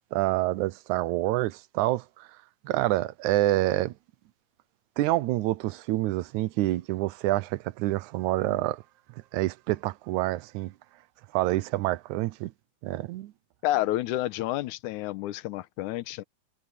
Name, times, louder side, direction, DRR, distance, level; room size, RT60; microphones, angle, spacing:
voice 1, 0.1-2.3 2.6-3.9 5.0-8.8 9.3-10.7 11.3-12.5 12.8-13.3, right 17 dB, 75° right, 2.0 m, -27 dB
voice 2, 13.6-16.2, left 15 dB, 80° left, 2.2 m, -29 dB
omnidirectional pair, 3.6 m